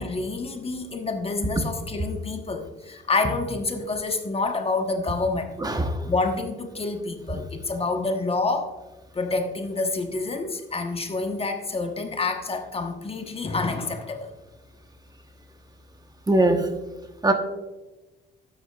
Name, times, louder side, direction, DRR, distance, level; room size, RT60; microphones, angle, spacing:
voice 1, 0.0-5.5 6.0-8.7 9.1-14.3, left 3 dB, 30° left, 5 dB, 1.1 m, -28 dB
voice 2, 5.6-6.0 16.3-16.7 17.2-17.3, right 2 dB, 20° right, 5 dB, 1.0 m, -20 dB
12.5 x 9.2 x 2.4 m, 1.1 s
cardioid pair, 90°, 20 cm